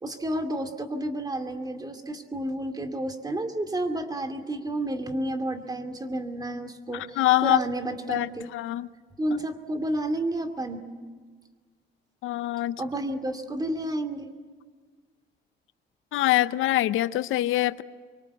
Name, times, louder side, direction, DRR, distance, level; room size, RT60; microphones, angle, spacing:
voice 1, 0.0-8.5 9.2-10.8 12.8-14.3, right 1 dB, 20° right, 8 dB, 2.6 m, -31 dB
voice 2, 6.9-7.6 8.1-8.3 8.5-8.9 12.2-12.8 16.1-17.8, left 15 dB, 90° left, 14 dB, 0.8 m, -24 dB
25.0 x 24.0 x 8.3 m, 1.5 s
cardioid pair, 120°, 20 cm